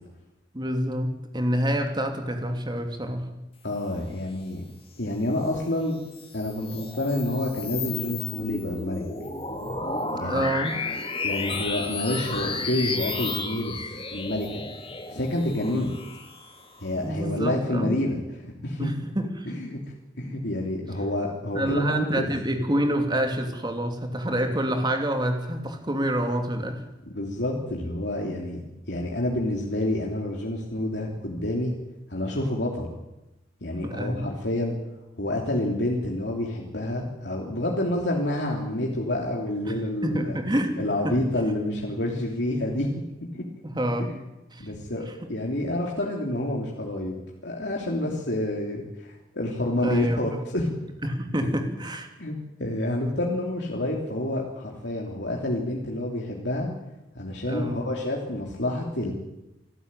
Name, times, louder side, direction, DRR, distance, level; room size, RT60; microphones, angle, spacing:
voice 1, 0.5-3.3 10.2-10.8 15.7-15.8 17.0-18.0 18.8-19.5 21.5-26.8 33.8-34.3 39.7-41.1 43.6-44.1 44.5-44.7 45.2-45.3 49.8-50.4 51.0-52.1 57.5-57.8, right 1 dB, 25° right, 5 dB, 2.9 m, -27 dB
voice 2, 3.6-4.6 5.0-6.0 6.3-9.0 10.1-10.4 11.2-13.8 14.1-14.6 15.1-15.9 16.8-18.9 19.5-19.8 20.2-22.3 27.0-28.6 28.9-31.7 32.1-32.9 33.6-34.7 35.2-40.4 40.8-42.9 43.3-43.4 44.6-47.2 47.4-50.7 52.2-52.3 52.6-56.7 57.1-59.1, left 1 dB, 70° left, -1 dB, 3.3 m, -28 dB
sound 1, 6.0-16.9, left 3 dB, 35° left, 3.0 m, -33 dB
26.5 x 12.5 x 9.1 m, 0.96 s
head